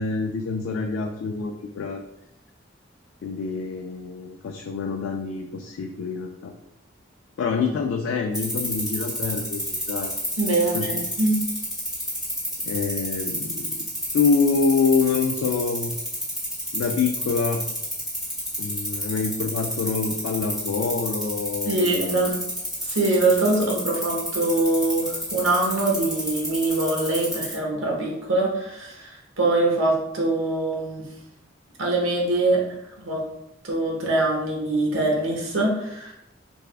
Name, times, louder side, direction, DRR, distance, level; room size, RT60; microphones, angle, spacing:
voice 1, 0.0-2.0 3.2-6.5 7.4-10.1 10.7-10.9 12.6-13.8 14.1-15.9 16.7-17.6 18.6-22.2, left 5 dB, 90° left, 3 dB, 0.3 m, -26 dB
sound 1, 8.3-27.5, equal, 5° right, 0.9 m, -29 dB
voice 2, 10.4-11.4 21.6-22.3 22.8-31.0 31.8-32.6 33.0-33.2 33.6-36.1, right 2 dB, 85° right, -2 dB, 0.9 m, -23 dB
3.4 x 2.0 x 3.3 m, 0.83 s
head